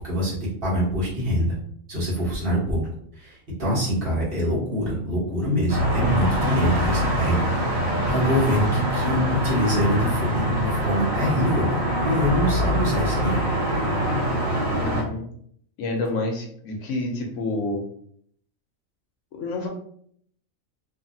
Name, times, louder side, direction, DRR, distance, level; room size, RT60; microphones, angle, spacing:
voice 1, 0.0-1.6 1.9-2.8 3.2-7.4 8.1-13.4, equal, 45° right, -6 dB, 1.3 m, -24 dB
sound 1, 5.7-15.0, equal, 80° right, 1.3 m, -24 dB
voice 2, 14.7-15.3 15.8-17.8 19.3-19.7, left 2 dB, 75° left, 2 dB, 0.9 m, -28 dB
2.8 x 2.5 x 2.6 m, 0.63 s
omnidirectional pair, 1.4 m